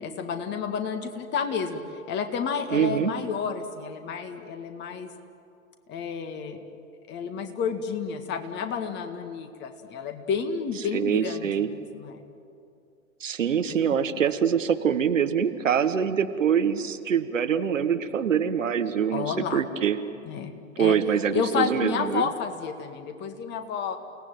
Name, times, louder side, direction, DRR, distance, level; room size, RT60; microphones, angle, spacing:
voice 1, 0.0-5.1 5.9-6.6 7.1-12.2 13.7-13.8 19.1-19.6 20.2-21.0 21.3-24.0, left 6 dB, 25° left, 7 dB, 1.9 m, -31 dB
voice 2, 2.7-3.1 10.9-11.7 13.2-20.0 20.8-22.3, right 8 dB, 65° right, 10 dB, 1.4 m, -24 dB
29.5 x 18.0 x 9.2 m, 2.5 s
figure-of-eight pair, 105°, 41 cm